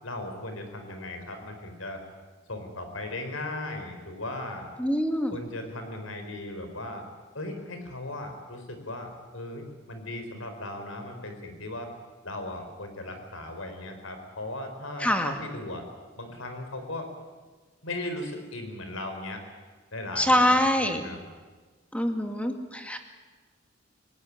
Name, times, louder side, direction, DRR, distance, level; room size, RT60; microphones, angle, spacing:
voice 1, 0.0-2.0 2.5-4.7 5.3-7.1 7.3-11.9 12.2-15.9 16.2-17.1 17.8-19.4 19.9-21.2, left 1 dB, 80° left, 6 dB, 4.8 m, -37 dB
voice 2, 4.8-5.4 15.0-15.3 20.2-21.0 21.9-23.0, left 1 dB, 5° left, 5 dB, 2.2 m, -24 dB
26.0 x 17.5 x 9.8 m, 1.4 s
head